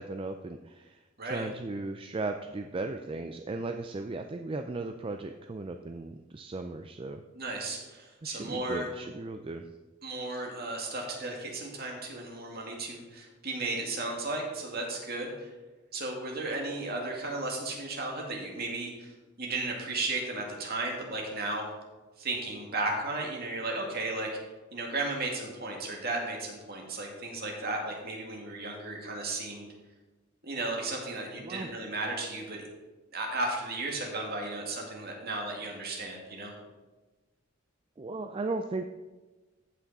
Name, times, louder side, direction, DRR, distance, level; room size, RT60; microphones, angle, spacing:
voice 1, 0.0-7.2 8.2-9.6 31.4-31.7 38.0-38.9, right 3 dB, 25° right, 6 dB, 0.4 m, -36 dB
voice 2, 1.2-1.5 7.4-8.9 10.0-15.5 15.9-19.1 19.4-21.6 22.2-24.3 24.7-29.7 30.4-32.6 33.1-36.5, right 2 dB, 50° right, 0 dB, 2.2 m, -34 dB
15.0 x 5.9 x 4.2 m, 1.2 s
head